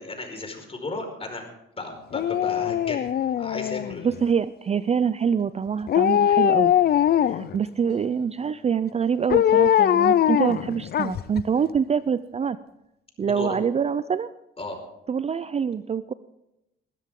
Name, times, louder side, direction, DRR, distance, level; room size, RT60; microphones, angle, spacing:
voice 1, 0.0-1.5 1.8-3.1 3.4-4.2 13.2-13.6 14.6-14.8, left 2 dB, 30° left, 4 dB, 4.8 m, -34 dB
Dog, 2.1-4.2 5.9-7.6 9.3-11.4 11.8-11.9, left 10 dB, 55° left, 0.5 m, -21 dB
voice 2, 4.0-6.7 7.3-12.6 13.2-14.3 15.1-16.1, right 7 dB, 30° right, 15 dB, 0.5 m, -25 dB
21.0 x 13.0 x 3.7 m, 0.87 s
cardioid pair, 90°, 20 cm